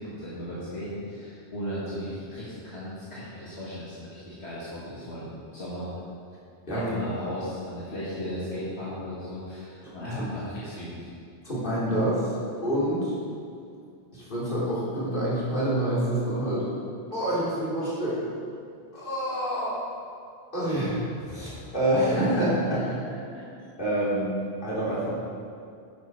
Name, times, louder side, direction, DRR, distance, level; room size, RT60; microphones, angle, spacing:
voice 1, 0.0-5.9 6.7-11.1 22.7-22.8 23.1-23.4, left 1 dB, 75° left, -9 dB, 2.5 m, -36 dB
voice 2, 11.4-13.2 14.1-16.7 17.1-18.3 18.9-19.8 20.5-21.0 21.3-22.9 23.8-24.4 24.6-25.1, right 1 dB, 50° left, -9 dB, 3.7 m, -27 dB
11.0 x 9.5 x 4.9 m, 2.4 s
omnidirectional pair, 1.1 m